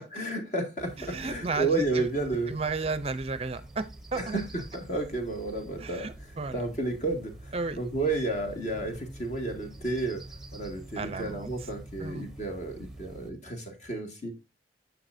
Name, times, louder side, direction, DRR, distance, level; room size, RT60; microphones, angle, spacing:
voice 1, 0.1-2.5 4.1-10.2 10.5-14.3, right 2 dB, 40° left, 2.1 m, -32 dB
sound 1, 0.8-13.3, right 1 dB, 5° right, 0.9 m, -46 dB
voice 2, 1.0-2.1 2.5-4.4 5.8-6.6 7.5-7.8 11.0-11.5 12.0-12.2, right 4 dB, 35° right, 0.5 m, -33 dB
10.5 x 7.0 x 2.6 m
head